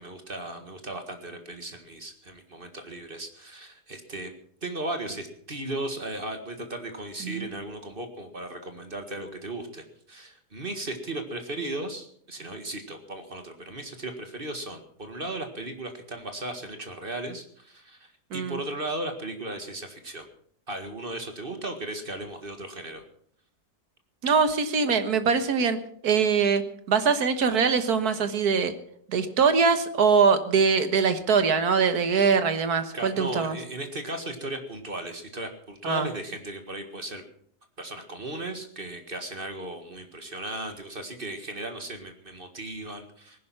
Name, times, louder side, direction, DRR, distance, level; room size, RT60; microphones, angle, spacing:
voice 1, 0.0-4.3 4.6-20.3 20.7-23.0 32.9-37.3 37.8-43.4, right 1 dB, 35° right, 6 dB, 1.9 m, -36 dB
voice 2, 24.2-26.6 26.9-28.7 29.1-33.6 35.8-36.1, right 5 dB, 70° right, 10 dB, 1.9 m, -23 dB
19.0 x 11.0 x 5.9 m, 0.63 s
omnidirectional pair, 1.7 m